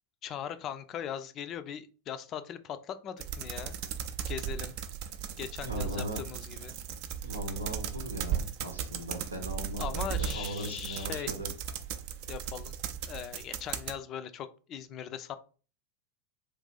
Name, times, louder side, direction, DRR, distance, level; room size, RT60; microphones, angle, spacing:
voice 1, 0.2-3.8 4.3-4.7 5.4-6.7 9.8-11.3 12.3-12.7 13.1-15.4, left 9 dB, 40° left, 11 dB, 0.4 m, -39 dB
sound 1, 3.2-14.0, right 9 dB, 50° right, 0.4 m, -36 dB
voice 2, 5.6-6.2 7.2-11.5, equal, 90° right, 3 dB, 0.7 m, -38 dB
2.5 x 2.3 x 3.8 m, 0.38 s
figure-of-eight pair, 90°, 0 cm